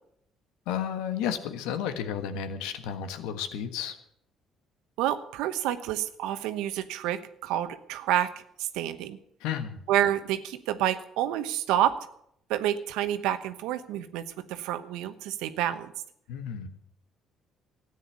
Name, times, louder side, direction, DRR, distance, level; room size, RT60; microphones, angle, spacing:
voice 1, 0.7-3.9 9.4-9.8 16.3-16.7, left 8 dB, 85° left, 10 dB, 1.4 m, -32 dB
voice 2, 5.0-9.2 9.9-12.0 12.5-15.9, right 12 dB, 80° right, 11 dB, 1.0 m, -29 dB
14.0 x 9.3 x 8.2 m, 0.70 s
supercardioid pair, 65°, 0 cm